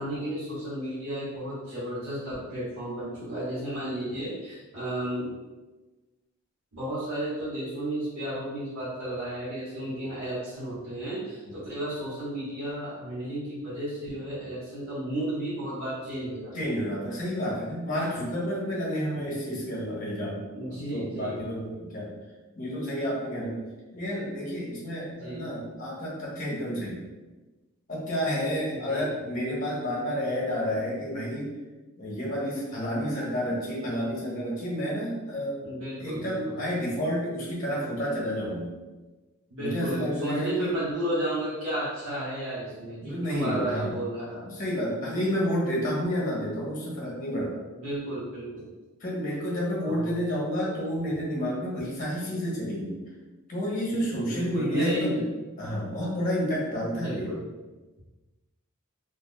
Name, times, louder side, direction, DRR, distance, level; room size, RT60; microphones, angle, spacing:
voice 1, 0.0-5.3 6.7-16.5 20.5-21.4 25.1-25.4 28.7-29.3 35.6-36.6 39.5-44.5 47.8-48.6 49.8-50.2 53.9-55.2 57.0-57.4, right 1 dB, 80° right, -12 dB, 1.3 m, -33 dB
voice 2, 16.5-22.1 22.5-23.6 23.9-27.0 27.9-31.6 32.0-35.7 36.0-38.7 39.6-40.7 43.0-43.9 44.4-47.6 49.0-53.0 53.5-55.3 55.6-57.3, equal, 35° left, -4 dB, 1.1 m, -30 dB
3.6 x 3.4 x 2.2 m, 1.2 s
head